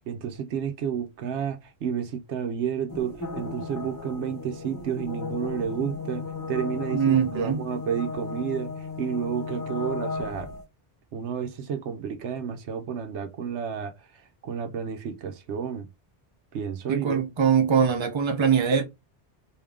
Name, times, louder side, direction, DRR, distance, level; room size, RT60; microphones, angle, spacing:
voice 1, 0.1-10.5 11.1-13.9 14.4-15.9 16.5-17.2, right 7 dB, 85° right, 1.0 m, -31 dB
sound 1, 2.9-10.6, left 4 dB, 20° left, 0.9 m, -35 dB
voice 2, 6.9-7.6 16.9-18.8, right 7 dB, 30° right, 0.7 m, -22 dB
3.6 x 2.7 x 3.5 m
omnidirectional pair, 1.1 m